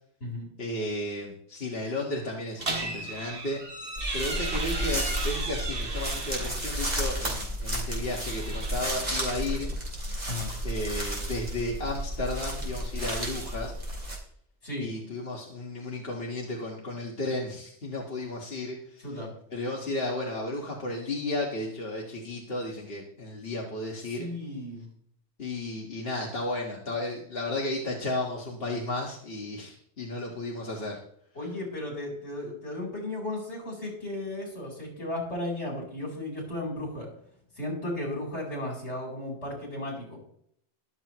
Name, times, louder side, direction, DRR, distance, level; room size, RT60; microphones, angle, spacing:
voice 1, 0.6-3.6 4.1-9.7 10.6-13.7 14.8-19.1 19.5-24.3 25.4-31.0, left 1 dB, 60° left, -2 dB, 2.0 m, -33 dB
creaky sauna door, 2.6-6.7 8.0-9.1, right 3 dB, 55° right, 2.0 m, -35 dB
sound 1, 4.0-14.2, equal, 35° right, 3.9 m, -32 dB
voice 2, 24.2-24.9 31.3-37.1 37.5-40.2, left 1 dB, 75° left, -1 dB, 4.8 m, -35 dB
23.0 x 7.6 x 3.1 m, 0.67 s
omnidirectional pair, 1.2 m